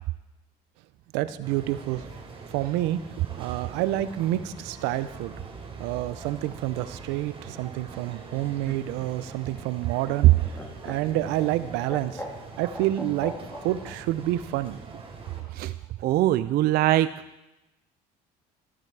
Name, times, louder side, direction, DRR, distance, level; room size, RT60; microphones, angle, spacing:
voice 1, 1.1-2.1 2.5-3.0 3.4-5.3 5.8-10.3 10.8-12.2 12.6-13.3 13.6-14.8, right 14 dB, 85° right, 13 dB, 0.8 m, -28 dB
sound 1, 1.4-15.4, right 4 dB, 30° right, 4.4 m, -43 dB
Laughter, 8.2-13.9 15.2-15.9, equal, 15° left, 3.3 m, -41 dB
voice 2, 16.0-17.1, right 14 dB, 60° right, 13 dB, 0.4 m, -22 dB
14.0 x 12.0 x 4.8 m, 0.96 s
supercardioid pair, 90°, 17 cm